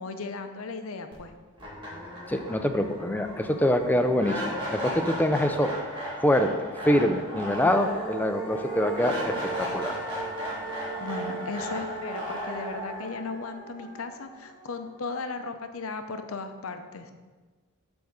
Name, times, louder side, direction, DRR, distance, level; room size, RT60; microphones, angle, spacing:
voice 1, 0.0-1.4 11.0-17.1, left 4 dB, 70° left, 7 dB, 0.6 m, -36 dB
sound 1, 1.1-1.2 1.6-14.7, right 1 dB, 20° right, 2.0 m, -35 dB
voice 2, 2.3-4.4 4.7-5.7 6.2-6.5 6.8-9.9, left 1 dB, 10° left, 6 dB, 0.4 m, -25 dB
7.9 x 3.5 x 6.3 m, 1.3 s
head